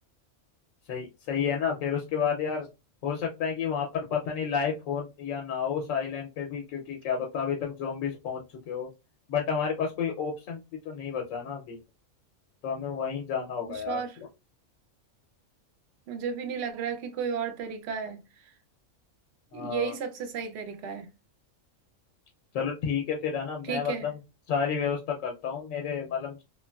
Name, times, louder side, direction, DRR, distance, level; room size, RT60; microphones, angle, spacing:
voice 1, 0.9-2.7 3.0-8.9 9.3-10.6 10.9-11.8 12.6-14.0 19.5-19.9 22.5-24.2 24.5-26.4, left 7 dB, 85° left, 1.0 m, -31 dB
voice 2, 13.7-14.2 16.1-18.2 19.5-21.1 23.6-24.1, right 6 dB, 65° right, 0.8 m, -33 dB
3.0 x 2.4 x 2.2 m
omnidirectional pair, 1.3 m